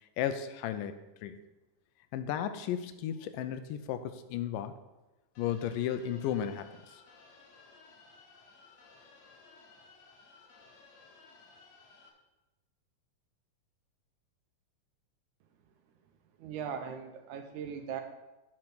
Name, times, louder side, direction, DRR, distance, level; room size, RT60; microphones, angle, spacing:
voice 1, 0.2-1.4 2.1-4.8 5.4-7.0, left 10 dB, 85° left, 10 dB, 2.3 m, -34 dB
sound 1, 5.3-12.1, left 4 dB, 60° left, 2.1 m, -58 dB
voice 2, 16.4-18.0, right 7 dB, 75° right, 6 dB, 2.0 m, -39 dB
8.7 x 5.6 x 6.2 m, 1.0 s
omnidirectional pair, 3.9 m